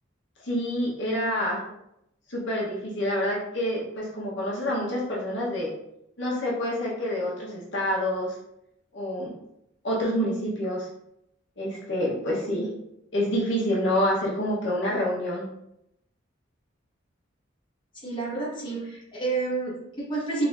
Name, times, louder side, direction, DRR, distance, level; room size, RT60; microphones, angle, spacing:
voice 1, 0.4-1.6 2.3-5.7 6.2-8.3 8.9-9.3 9.8-10.9 11.6-12.7 13.1-15.4, equal, 65° left, -5 dB, 0.9 m, -27 dB
voice 2, 17.9-20.5, right 3 dB, 25° left, -7 dB, 1.2 m, -29 dB
3.8 x 3.2 x 2.4 m, 0.80 s
head